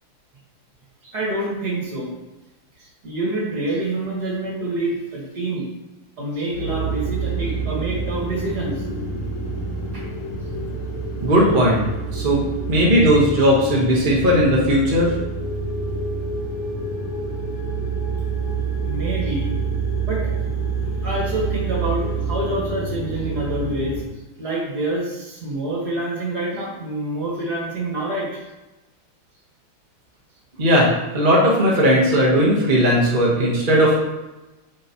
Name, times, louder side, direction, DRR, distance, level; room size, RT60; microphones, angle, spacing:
voice 1, 1.0-2.2 2.8-5.6 6.2-8.8 9.9-10.0 18.8-19.5 20.1-20.3 21.0-24.0 24.4-28.4, right 2 dB, 50° right, -4 dB, 2.2 m, -27 dB
sound 1, 6.5-24.0, right 3 dB, 90° left, 2.1 m, -27 dB
voice 2, 11.2-11.8 12.1-12.4 12.7-15.1 30.6-30.9 31.1-34.0, equal, 30° right, -4 dB, 1.2 m, -17 dB
8.9 x 5.3 x 3.0 m, 1.1 s
omnidirectional pair, 2.3 m